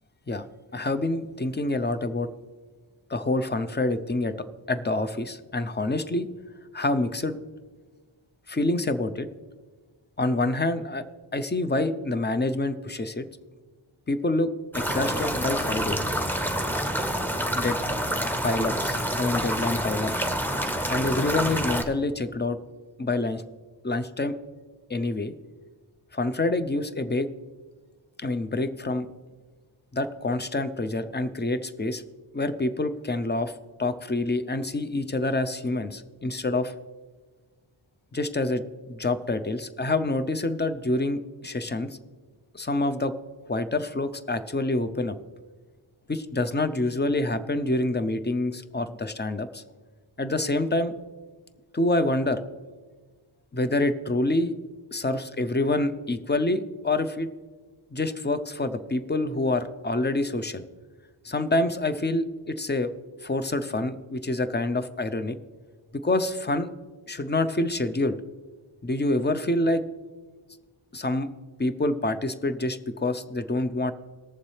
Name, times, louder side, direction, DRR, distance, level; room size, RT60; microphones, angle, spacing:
voice 1, 0.7-2.3 3.1-4.3 4.7-6.3 6.7-7.4 8.5-9.3 10.2-11.0 11.3-13.3 14.1-14.5 14.7-16.0 17.5-17.8 18.4-20.3 20.9-22.6 23.0-23.4 23.8-24.4 24.9-25.3 26.1-27.3 28.2-29.1 29.9-32.0 32.3-33.5 33.8-36.7 38.1-38.6 38.9-42.0 42.5-43.1 43.5-45.2 46.1-49.6 50.2-50.9 51.7-52.4 53.5-54.5 54.9-57.3 57.9-60.6 61.2-62.9 63.2-65.4 65.9-66.7 67.1-68.2 68.8-69.8 70.9-71.3 71.6-73.9, left 2 dB, 20° left, 11 dB, 0.6 m, -27 dB
sound 1, 14.7-21.8, equal, 5° left, 1.0 m, -27 dB
19.5 x 7.1 x 3.2 m, 1.4 s
wide cardioid pair, 65°, 49 cm